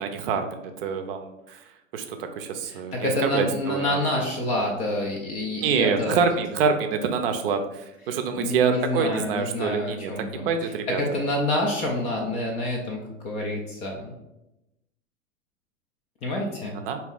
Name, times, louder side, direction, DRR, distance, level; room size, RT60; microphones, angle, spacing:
voice 1, 0.0-1.6 1.9-4.2 5.6-10.1 10.5-11.0 16.9-17.0, right 5 dB, 45° right, 6 dB, 0.6 m, -26 dB
voice 2, 2.7-6.2 8.4-10.5 10.9-14.1 16.2-16.8, left 1 dB, 20° left, 0 dB, 0.4 m, -27 dB
3.8 x 2.7 x 3.5 m, 0.91 s
figure-of-eight pair, 100°, 39 cm